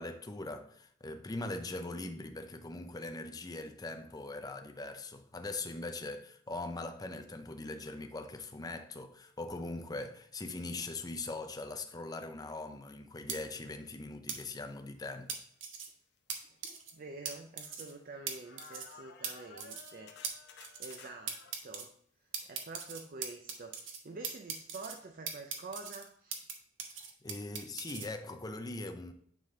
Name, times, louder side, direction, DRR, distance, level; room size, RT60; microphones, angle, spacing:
voice 1, 0.0-15.4 27.0-29.1, left 2 dB, 20° left, 0.5 m, -41 dB
sound 1, 13.3-13.4 14.3-14.4 15.3-15.9 16.3-16.4 16.6-16.9 17.3-17.4 17.6-17.9 18.3-18.4 18.6-18.9 19.2-19.3 19.6-19.9 20.2-20.3 20.6-21.0 21.3-21.9 22.3-24.0 24.2-25.0 25.3-26.5 26.8-28.1, right 7 dB, 85° right, 1.0 m, -39 dB
sound 2, 15.7-15.8 16.4-18.2 18.4-21.6 24.4-24.5 24.8-24.9, left 4 dB, 60° left, 0.8 m, -55 dB
voice 2, 16.6-20.2 20.8-21.4 21.6-21.9 22.5-26.4, right 3 dB, 45° right, 0.5 m, -47 dB
9.1 x 3.8 x 3.7 m
head